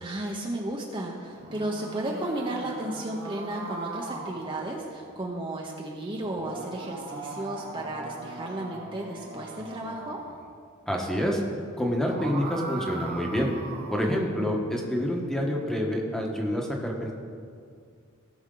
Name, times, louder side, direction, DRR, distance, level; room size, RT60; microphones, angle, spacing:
voice 1, 0.0-10.2 14.0-14.3, right 1 dB, 25° right, -1 dB, 0.9 m, -34 dB
sound 1, 1.3-5.2 6.2-10.4 11.8-14.3, right 3 dB, 45° right, 1.2 m, -40 dB
voice 2, 10.9-11.4 11.8-13.5 13.9-17.1, equal, 5° left, -1 dB, 1.2 m, -27 dB
17.5 x 6.1 x 3.9 m, 2.2 s
head